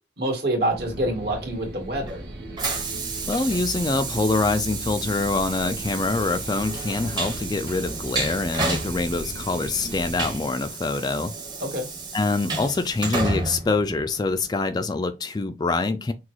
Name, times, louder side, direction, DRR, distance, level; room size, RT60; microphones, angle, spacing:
voice 1, 0.2-2.2 11.6-11.9, right 1 dB, 60° right, 1.9 m, -26 dB
sound 1, 0.7-10.3, right 1 dB, 80° right, 1.2 m, -38 dB
Train, 1.4-14.6, right 3 dB, 25° right, 0.9 m, -32 dB
voice 2, 3.3-11.3 12.1-16.1, left 3 dB, 25° left, 0.3 m, -25 dB
6.1 x 2.2 x 3.0 m
head